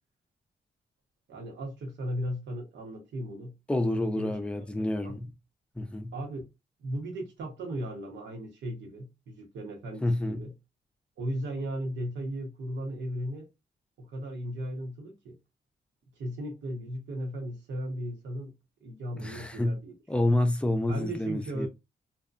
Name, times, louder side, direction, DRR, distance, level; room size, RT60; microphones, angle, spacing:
voice 1, 1.3-3.5 4.0-5.2 6.1-6.5 6.8-10.5 11.2-13.5 14.0-15.4 16.2-18.5 18.8-19.9 20.3-20.4 20.9-21.7, right 1 dB, 85° right, 0.9 m, -36 dB
voice 2, 3.7-5.3 5.8-6.1 10.0-10.5 19.1-19.8 20.1-21.7, left 1 dB, 5° left, 0.5 m, -28 dB
2.6 x 2.1 x 2.4 m
cardioid pair, 85°, 18 cm